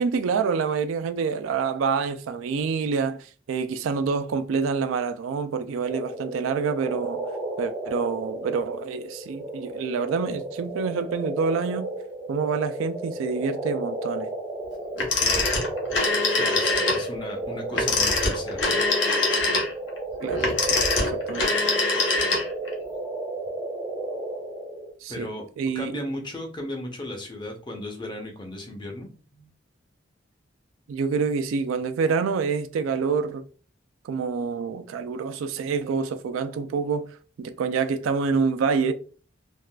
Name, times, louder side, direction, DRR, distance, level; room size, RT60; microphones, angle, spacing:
voice 1, 0.0-7.2 7.6-11.9 12.3-14.3 20.2-20.5 20.7-21.5 25.0-25.3 25.6-25.9 30.9-33.4 34.0-37.1 37.4-38.9, right 5 dB, 85° right, 0.3 m, -27 dB
sound 1, 5.8-24.9, right 2 dB, 20° right, 0.6 m, -33 dB
Telephone, 15.0-17.0 17.7-22.7, left 3 dB, 65° left, 0.8 m, -23 dB
voice 2, 15.2-15.5 16.2-18.8 25.1-25.5 25.7-29.5, left 1 dB, 25° left, 0.7 m, -36 dB
3.5 x 2.3 x 2.2 m
head